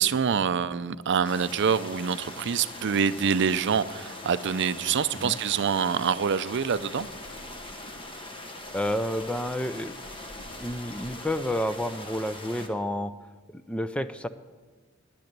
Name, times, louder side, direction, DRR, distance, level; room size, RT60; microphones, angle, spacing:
voice 1, 0.0-7.1, right 6 dB, 60° right, 15 dB, 0.5 m, -26 dB
sound 1, 1.2-12.7, left 1 dB, 25° left, 1.3 m, -41 dB
voice 2, 8.7-9.9 10.4-13.1 13.5-14.3, left 1 dB, 5° left, 12 dB, 0.4 m, -30 dB
10.5 x 10.0 x 6.7 m, 1.4 s
head